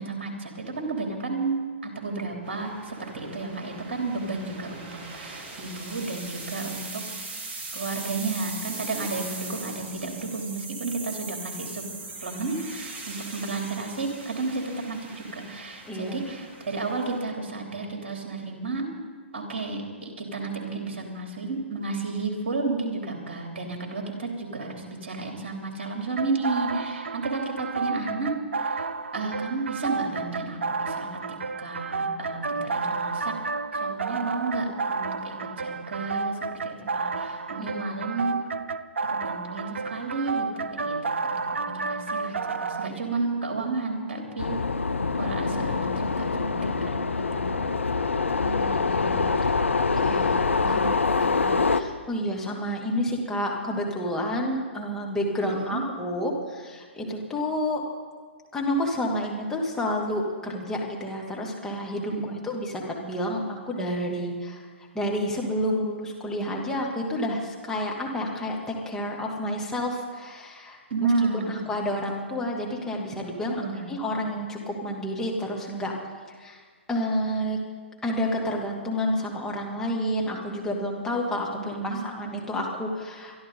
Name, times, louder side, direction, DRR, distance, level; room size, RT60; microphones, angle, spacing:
voice 1, 0.0-7.0 7.7-11.8 12.2-18.9 19.3-28.9 29.1-31.1 31.6-33.3 33.7-38.4 39.1-41.1 41.5-44.6 45.2-47.6 55.4-55.8 62.1-62.3 70.9-71.6 73.6-73.9 81.6-82.0, right 3 dB, 55° right, 2 dB, 3.3 m, -32 dB
sound 1, 2.4-17.2, right 3 dB, 25° right, 2.2 m, -40 dB
voice 2, 15.9-16.2 37.6-38.0 48.4-49.5 50.0-57.8 58.5-62.1 62.4-64.6 64.9-70.8 71.5-75.9 76.4-76.6 76.9-77.6 78.0-83.3, equal, 10° left, -2 dB, 2.5 m, -30 dB
sound 2, 26.2-42.9, right 4 dB, 75° right, 0.6 m, -31 dB
sound 3, 44.4-51.8, left 4 dB, 80° left, 0.7 m, -25 dB
23.5 x 12.5 x 3.9 m, 1.5 s
figure-of-eight pair, 120°, 7 cm